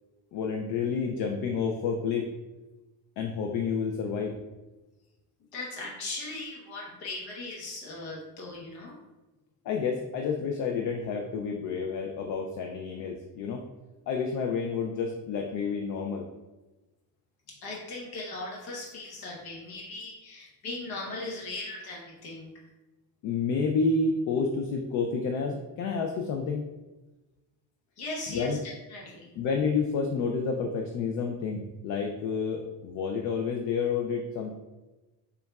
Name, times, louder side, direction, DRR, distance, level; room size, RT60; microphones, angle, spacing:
voice 1, 0.3-2.3 3.2-4.4 9.6-13.6 14.1-16.3 23.2-26.7 28.3-28.6 29.4-34.5, left 5 dB, 50° left, 2 dB, 0.4 m, -29 dB
voice 2, 5.5-9.0 17.6-22.5 28.0-29.3, left 2 dB, 65° left, -2 dB, 1.0 m, -38 dB
6.7 x 2.3 x 2.3 m, 1.1 s
cardioid pair, 150°, 39 cm